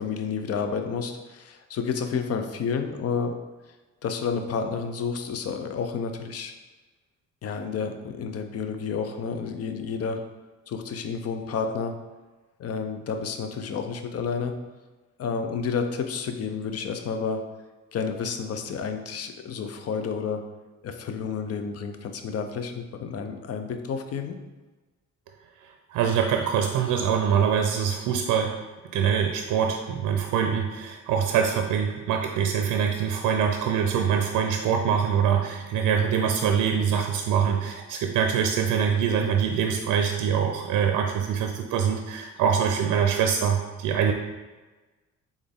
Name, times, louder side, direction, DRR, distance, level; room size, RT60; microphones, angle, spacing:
voice 1, 0.0-3.4 4.0-6.5 7.4-10.2 10.7-12.0 12.6-14.6 15.2-17.4 17.9-20.4 20.8-24.4, left 5 dB, 55° left, 7 dB, 0.6 m, -30 dB
voice 2, 25.9-28.6 28.9-44.1, right 7 dB, 85° right, 4 dB, 0.5 m, -24 dB
4.2 x 3.6 x 3.5 m, 1.2 s
cardioid pair, 90°, 30 cm